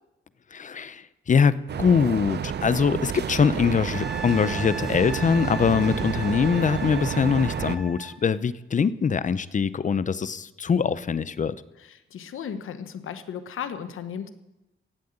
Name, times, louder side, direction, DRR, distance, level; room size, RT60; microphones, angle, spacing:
voice 1, 0.5-11.5, left 6 dB, 40° left, 16 dB, 0.6 m, -23 dB
sound 1, 1.7-7.8, right 8 dB, 55° right, 0.7 m, -30 dB
Wind instrument woodwind instrument, 3.9-8.2 10.9-11.0, right 1 dB, ahead, 1.7 m, -39 dB
voice 2, 11.8-14.3, left 7 dB, 90° left, 10 dB, 1.0 m, -35 dB
16.5 x 7.8 x 8.7 m, 0.97 s
wide cardioid pair, 115°, 20 cm